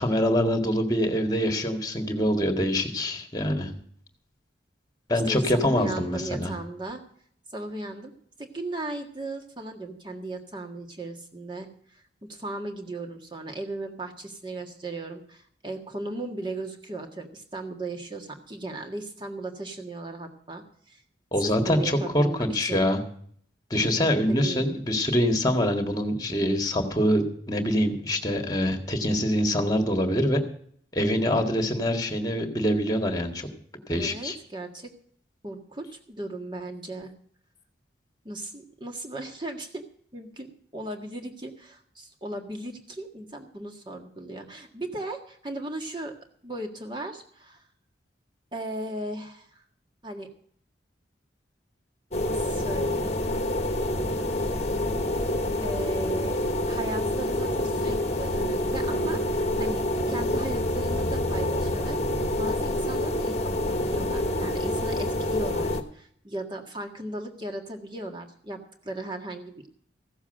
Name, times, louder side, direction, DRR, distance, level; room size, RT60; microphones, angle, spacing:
voice 1, 0.0-3.7 5.1-6.5 21.3-23.0 23.7-30.4 30.9-33.5 33.9-34.4, equal, 20° left, 5 dB, 1.7 m, -25 dB
voice 2, 5.1-7.0 7.5-8.1 8.4-21.0 21.4-22.9 24.3-24.7 33.9-34.9 35.4-37.1 38.3-39.8 40.1-46.1 46.4-47.6 48.5-49.6 50.0-50.3 52.2-53.2 55.6-56.4 56.7-62.0 62.4-69.7, right 2 dB, 25° right, 3 dB, 1.7 m, -37 dB
sound 1, 52.1-65.8, left 1 dB, 35° left, 1.2 m, -27 dB
15.5 x 7.2 x 7.7 m, 0.62 s
head